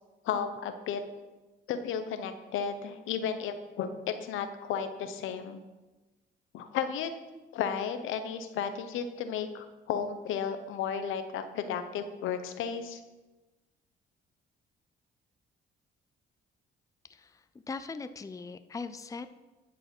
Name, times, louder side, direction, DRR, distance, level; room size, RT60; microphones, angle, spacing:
voice 1, 0.2-1.0 1.7-5.6 6.5-7.1 7.5-13.0, left 7 dB, 85° left, 9 dB, 0.9 m, -33 dB
voice 2, 17.1-19.3, left 4 dB, 15° left, 11 dB, 0.5 m, -40 dB
11.5 x 4.9 x 6.0 m, 1.2 s
cardioid pair, 90°, 20 cm